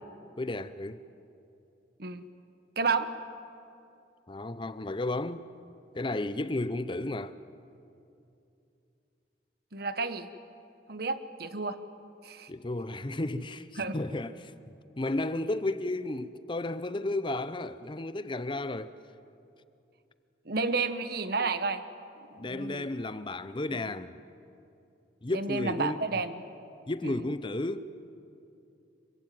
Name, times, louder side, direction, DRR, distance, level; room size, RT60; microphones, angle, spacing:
voice 1, 0.4-1.0 4.3-5.4 5.9-7.4 12.5-14.5 15.0-19.0 22.4-24.2 25.2-26.1 26.9-27.8, left 2 dB, 25° left, 0.7 m, -33 dB
voice 2, 2.8-3.1 9.7-10.3 10.9-11.8 12.2-12.5 13.8-14.0 20.5-21.8 22.3-22.9 25.3-26.3 27.0-27.2, right 4 dB, 55° right, 1.3 m, -31 dB
25.5 x 23.0 x 9.3 m
head